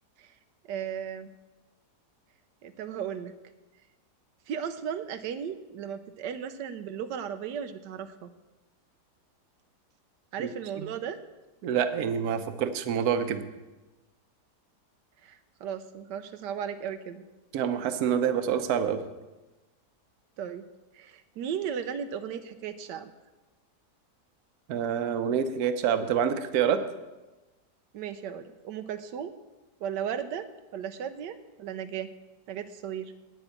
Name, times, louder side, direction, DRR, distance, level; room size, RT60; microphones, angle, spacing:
voice 1, 0.7-1.3 2.6-3.3 4.5-8.3 10.3-11.2 15.2-17.2 20.4-20.6 20.9-23.1 27.9-29.3 29.8-30.5 30.7-32.1 32.5-33.1, right 8 dB, 85° right, 9 dB, 1.3 m, -35 dB
voice 2, 11.6-13.4 17.5-19.0 24.7-26.8, right 8 dB, 65° right, 10 dB, 1.2 m, -27 dB
9.0 x 7.9 x 8.3 m, 1.1 s
omnidirectional pair, 1.8 m